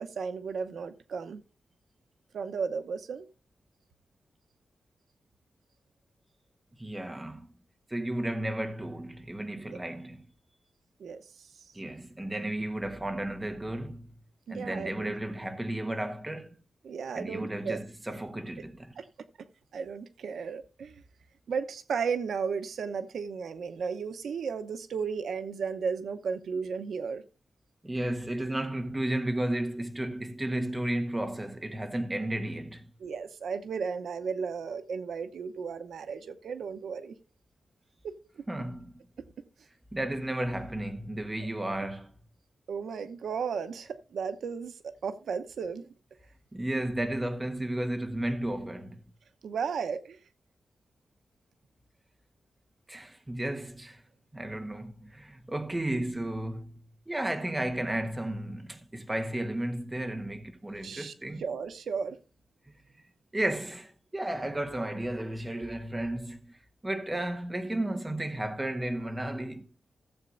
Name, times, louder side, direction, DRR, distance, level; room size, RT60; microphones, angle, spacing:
voice 1, 0.0-1.4 2.3-3.3 9.7-9.8 11.0-11.2 14.5-15.1 16.8-17.8 19.0-19.1 19.7-21.0 21.5-27.2 33.0-37.1 38.0-38.4 41.4-41.5 42.7-44.7 45.0-45.9 49.4-50.2 60.8-61.1 61.4-62.2, right 6 dB, 80° right, 0.8 m, -34 dB
voice 2, 6.8-7.5 7.9-10.2 11.7-14.1 14.5-16.6 17.1-19.0 27.8-32.9 38.5-38.9 39.9-42.1 46.5-49.0 52.9-54.0 54.3-56.8 57.1-61.4 63.3-66.5 66.8-69.7, right 1 dB, 10° right, 1.2 m, -33 dB
16.0 x 7.8 x 2.5 m
wide cardioid pair, 165°, 0 cm